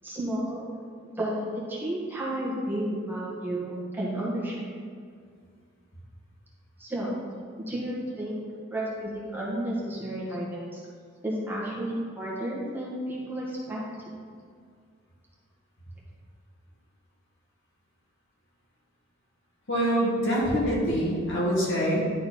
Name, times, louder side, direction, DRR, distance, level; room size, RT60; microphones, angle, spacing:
voice 1, 0.0-0.7 1.0-4.6 6.8-7.2 7.7-8.4 8.7-10.8 11.2-13.8, right 1 dB, 10° right, -6 dB, 1.6 m, -32 dB
voice 2, 19.7-22.1, equal, 60° left, -5 dB, 2.0 m, -25 dB
11.0 x 4.2 x 4.4 m, 2.1 s
head